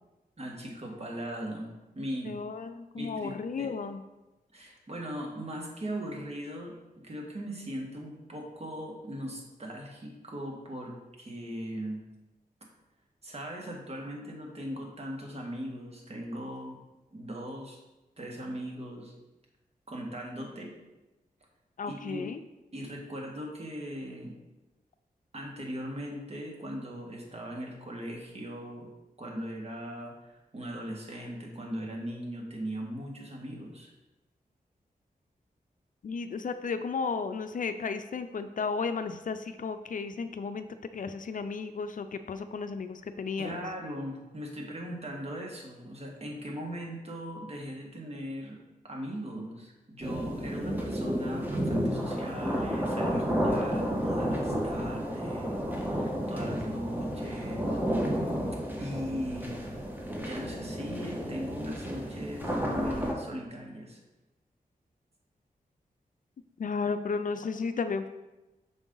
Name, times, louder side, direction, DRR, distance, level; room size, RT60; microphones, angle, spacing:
voice 1, 0.4-2.4 2.9-3.7 4.5-12.0 13.2-16.8 17.1-17.8 18.2-19.1 19.9-20.7 21.9-22.2 22.7-24.3 25.3-28.9 29.2-33.9 43.4-48.6 48.8-57.8 58.2-58.4 58.8-59.6 60.2-64.0, equal, 40° right, 0 dB, 1.6 m, -39 dB
voice 2, 2.3-4.0 21.8-22.4 36.0-40.7 40.9-43.6 66.6-68.1, left 5 dB, 60° left, 9 dB, 0.4 m, -34 dB
sound 1, 50.0-63.1, equal, 10° right, 1.4 m, -31 dB
6.2 x 5.0 x 3.8 m, 1.0 s
cardioid pair, 60°, 16 cm